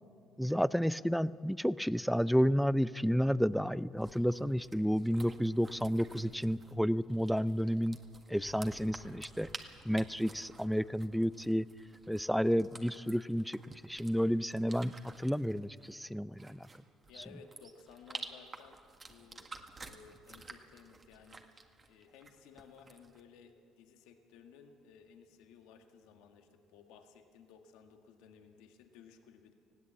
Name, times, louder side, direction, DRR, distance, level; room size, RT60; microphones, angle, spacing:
voice 1, 0.4-8.0 8.3-9.5 9.8-11.7 12.1-16.7, equal, ahead, 17 dB, 0.5 m, -31 dB
sound 1, 4.0-23.2, right 3 dB, 30° right, 1.8 m, -52 dB
voice 2, 17.1-18.8 19.1-19.5 19.8-21.4 21.9-29.5, left 6 dB, 80° left, 5 dB, 1.7 m, -57 dB
20.0 x 15.5 x 8.5 m, 2.3 s
supercardioid pair, 80°, 0 cm